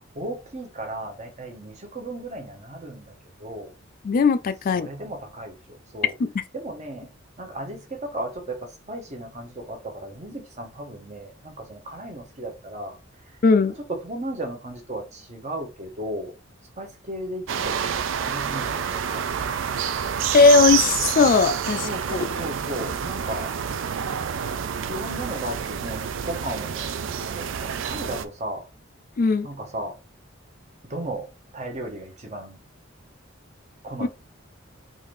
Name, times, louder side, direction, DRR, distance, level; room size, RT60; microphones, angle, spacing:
voice 1, 0.1-3.7 4.7-6.1 6.5-7.1 7.4-13.0 13.2-13.4 13.7-16.4 16.8-18.0 18.2-19.4 21.8-23.5 24.9-28.7 29.4-30.0 30.9-32.6 33.8-34.1, right 1 dB, 35° right, 0.9 m, -35 dB
voice 2, 4.0-4.9 6.2-6.3 13.4-13.7 20.3-21.8 29.2-29.5 34.0-34.1, left 4 dB, 45° left, 0.3 m, -18 dB
sound 1, 17.5-28.3, right 8 dB, 65° right, 0.4 m, -28 dB
3.8 x 2.6 x 3.1 m
head